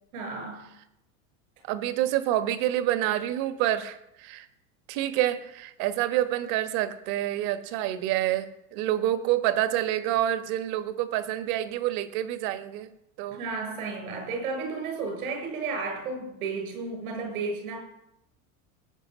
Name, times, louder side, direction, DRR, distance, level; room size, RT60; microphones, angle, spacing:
voice 1, 0.1-0.7 13.3-17.8, right 4 dB, 85° right, 3 dB, 7.4 m, -33 dB
voice 2, 1.7-4.5 4.9-12.9 13.2-13.4, right 13 dB, 50° right, 10 dB, 1.5 m, -27 dB
18.5 x 9.1 x 6.4 m, 0.84 s
supercardioid pair, 140°, 42 cm